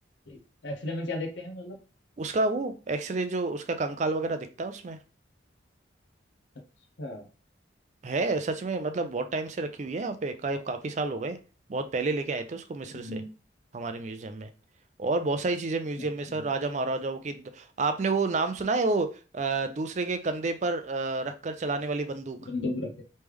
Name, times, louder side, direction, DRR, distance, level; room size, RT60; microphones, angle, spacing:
voice 1, 0.3-1.8 7.0-7.3 12.9-13.3 16.0-16.5 22.5-23.0, left 2 dB, 75° left, 0.7 m, -35 dB
voice 2, 2.2-5.0 8.0-11.4 11.7-13.2 13.7-14.5 15.0-22.4, right 3 dB, 40° right, 0.4 m, -30 dB
3.2 x 3.2 x 3.5 m
head